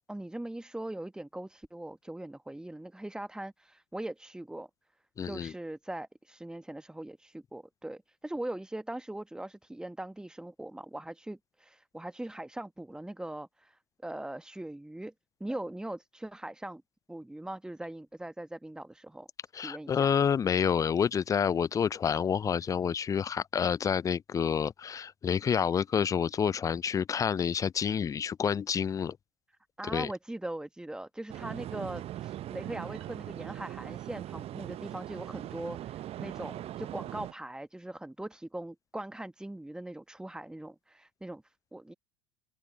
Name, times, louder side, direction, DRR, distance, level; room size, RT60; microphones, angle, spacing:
voice 1, 0.1-4.7 5.2-15.1 15.4-16.8 17.1-19.3 19.5-20.1 29.8-41.9, right 1 dB, 5° right, 1.3 m, -41 dB
voice 2, 5.2-5.5 19.5-29.2 29.9-30.1, left 7 dB, 20° left, 0.4 m, -28 dB
sound 1, 31.3-37.3, right 13 dB, 35° right, 0.8 m, -40 dB
figure-of-eight pair, 75°, 17 cm